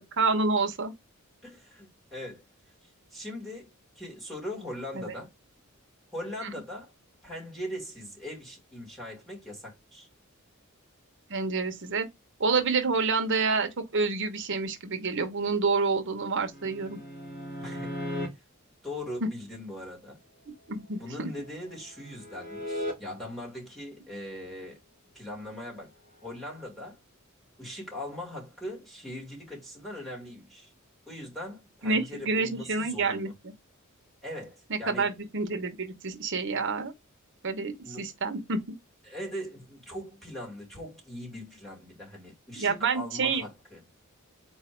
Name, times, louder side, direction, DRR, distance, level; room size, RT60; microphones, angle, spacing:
voice 1, 0.1-0.9 4.9-5.1 11.3-12.1 12.4-17.0 20.5-21.3 31.8-33.5 34.7-36.9 37.4-38.6 42.6-43.4, right 4 dB, 60° right, 1.0 m, -28 dB
voice 2, 1.4-2.4 3.1-3.7 4.0-5.3 6.1-6.9 7.2-10.1 17.6-18.0 18.8-20.2 21.0-24.8 25.1-25.9 26.2-27.0 27.6-30.7 31.1-33.3 34.2-35.1 37.8-38.1 39.1-43.8, left 1 dB, ahead, 2.0 m, -40 dB
sound 1, 16.5-18.3 21.0-22.9 26.4-26.6, left 1 dB, 50° left, 1.9 m, -37 dB
4.2 x 2.7 x 4.5 m
head